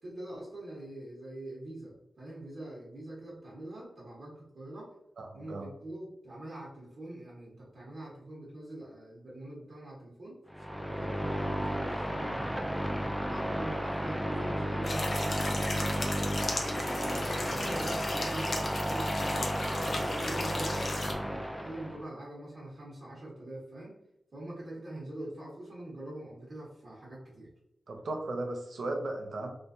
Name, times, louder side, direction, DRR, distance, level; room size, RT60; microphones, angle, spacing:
voice 1, 0.0-4.9 5.3-10.4 10.8-12.7 13.2-16.5 17.0-19.5 19.9-23.9 24.3-27.5, right 1 dB, 45° right, -6 dB, 1.2 m, -44 dB
voice 2, 5.2-5.7 27.9-29.5, right 2 dB, 65° right, 2 dB, 0.7 m, -36 dB
sound 1, 10.5-22.0, equal, ahead, 0.3 m, -33 dB
sound 2, 14.8-21.1, left 2 dB, 45° left, 0.7 m, -36 dB
3.3 x 3.1 x 2.6 m, 0.82 s
wide cardioid pair, 160°, 0 cm